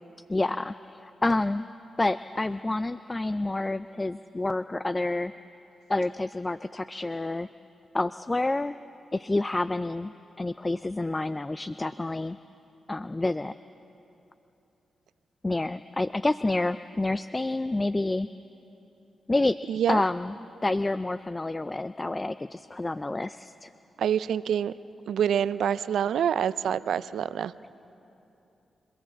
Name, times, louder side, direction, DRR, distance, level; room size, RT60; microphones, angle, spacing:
voice 1, 0.3-1.6 2.0-5.3 5.9-7.5 7.9-8.7 9.1-12.4 12.9-13.5 15.4-18.3 19.3-19.6 19.9-20.3 20.6-23.7, left 2 dB, 25° left, 14 dB, 0.4 m, -28 dB
voice 2, 19.7-20.0 24.0-24.7 25.1-27.5, right 9 dB, 75° right, 16 dB, 0.4 m, -26 dB
30.0 x 15.5 x 7.3 m, 2.9 s
supercardioid pair, 40°, 0 cm